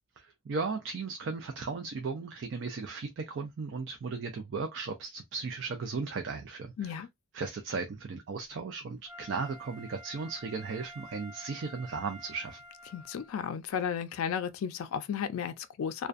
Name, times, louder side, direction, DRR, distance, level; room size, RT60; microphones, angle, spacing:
voice 1, 0.5-7.0 7.3-12.6, right 4 dB, 60° right, 0.4 m, -36 dB
voice 2, 6.8-7.1 12.9-16.1, left 7 dB, 85° left, 0.3 m, -34 dB
Wind instrument woodwind instrument, 9.1-13.3 13.8-13.9, equal, ahead, 1.1 m, -49 dB
2.4 x 2.2 x 2.4 m
head